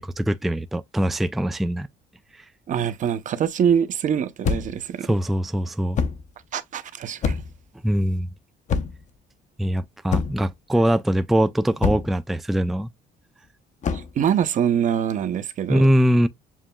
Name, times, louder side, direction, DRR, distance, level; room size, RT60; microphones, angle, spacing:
voice 1, 0.0-1.9 5.0-6.0 7.8-8.3 9.6-12.9 15.7-16.3, equal, ahead, 0.3 m, -22 dB
voice 2, 2.7-5.1 6.5-7.4 13.9-15.9, right 8 dB, 50° right, 0.7 m, -24 dB
sound 1, 4.4-4.8 5.9-6.3 7.2-7.6 8.7-9.1 10.1-10.5 11.8-12.2 13.8-14.1, left 5 dB, 45° left, 0.8 m, -25 dB
7.3 x 2.8 x 2.3 m
cardioid pair, 110°, 17 cm